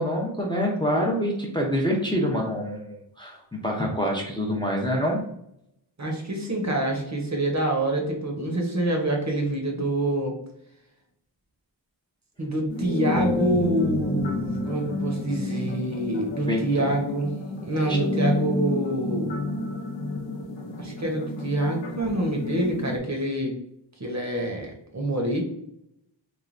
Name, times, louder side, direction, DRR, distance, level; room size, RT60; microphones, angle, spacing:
voice 1, 0.0-5.2 16.4-16.6 17.9-18.0, equal, 10° left, -2 dB, 0.5 m, -26 dB
voice 2, 6.0-10.4 12.4-17.3 17.6-19.4 20.8-23.6 24.0-25.4, right 1 dB, 40° right, 1 dB, 0.7 m, -26 dB
sound 1, 12.7-23.0, left 2 dB, 85° left, 0.6 m, -30 dB
3.2 x 2.2 x 2.4 m, 0.75 s
wide cardioid pair, 70°, 44 cm